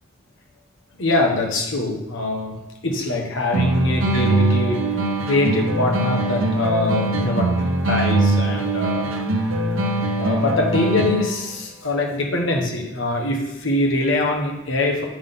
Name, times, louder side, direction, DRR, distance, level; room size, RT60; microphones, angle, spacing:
voice 1, 1.0-2.6 2.8-4.8 5.2-7.5 7.9-9.1 9.5-9.7 10.2-15.0, left 2 dB, 65° left, 1 dB, 1.4 m, -23 dB
sound 1, 3.5-11.5, right 2 dB, 70° right, 0.8 m, -22 dB
7.8 x 3.8 x 5.5 m, 0.93 s
head